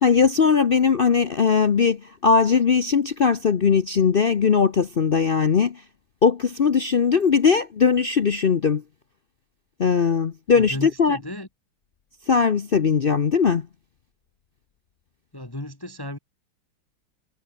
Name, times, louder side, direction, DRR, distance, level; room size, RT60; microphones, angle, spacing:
voice 1, 0.0-5.8 6.2-8.8 9.8-11.2 12.3-13.7, left 6 dB, 55° left, 0.6 m, -19 dB
voice 2, 10.5-11.5 15.3-16.2, left 1 dB, 10° left, 2.2 m, -34 dB
omnidirectional pair, 2.1 m